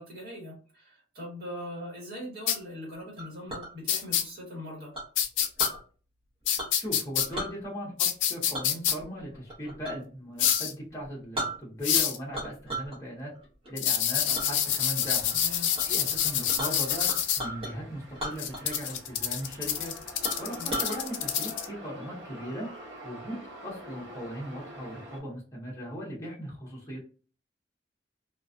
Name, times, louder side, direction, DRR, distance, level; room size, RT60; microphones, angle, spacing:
voice 1, 0.0-4.9 15.3-15.7 20.6-20.7, left 1 dB, 55° right, -3 dB, 1.3 m, -41 dB
sound 1, 2.5-2.6 3.9-4.2 5.2-5.7 6.5-7.3 8.0-8.9 10.4-10.7 11.8-12.2 13.8-17.4 18.4-21.7, left 9 dB, 80° left, 0.4 m, -27 dB
Chink clink, 3.2-3.7 4.9-5.8 6.6-6.9 7.2-7.5 8.5-10.1 10.4-10.6 11.0-11.1 11.3-12.0 12.3-13.0 13.3-13.7 14.3-14.5 15.0-15.4 15.7-15.9 16.1-17.7 18.1-18.9 19.2-19.3 19.8-19.9 20.2-21.0, right 1 dB, 30° right, 0.9 m, -36 dB
voice 2, 6.7-7.9 8.3-13.3 13.7-15.3 15.8-17.1 17.4-19.9 20.4-22.7 23.0-27.0, equal, 15° left, -5 dB, 0.8 m, -38 dB
sound 2, 14.1-25.2, equal, 75° right, 0.9 m, -47 dB
2.4 x 2.3 x 2.4 m, 0.39 s
head